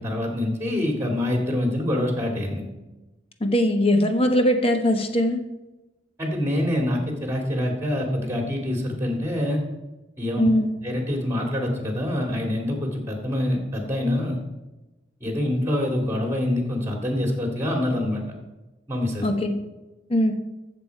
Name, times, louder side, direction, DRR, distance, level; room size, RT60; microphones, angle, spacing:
voice 1, 0.0-2.6 6.2-9.6 10.2-10.5 10.8-14.4 15.2-18.2 18.9-19.3, left 1 dB, 15° right, 2 dB, 2.3 m, -25 dB
voice 2, 3.4-5.4 10.4-10.7 19.2-19.6 20.1-20.3, left 1 dB, 30° left, 6 dB, 1.1 m, -20 dB
14.0 x 7.3 x 4.6 m, 1.1 s
head